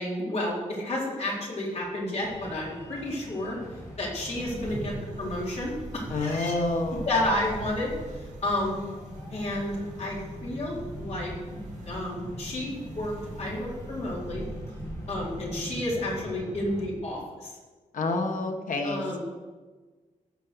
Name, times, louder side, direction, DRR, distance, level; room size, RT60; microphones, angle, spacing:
voice 1, 0.0-3.6 4.0-6.6 7.1-8.8 9.3-14.5 15.1-17.5 18.8-19.2, left 1 dB, 55° left, -4 dB, 4.3 m, -31 dB
sound 1, 2.2-16.9, equal, 25° left, 2.4 m, -42 dB
sound 2, 4.3-15.6, right 2 dB, 60° right, 3.0 m, -43 dB
voice 2, 6.1-7.1 17.9-19.2, left 2 dB, 75° left, 3 dB, 1.7 m, -28 dB
16.0 x 6.6 x 7.0 m, 1.4 s
wide cardioid pair, 145°, 13 cm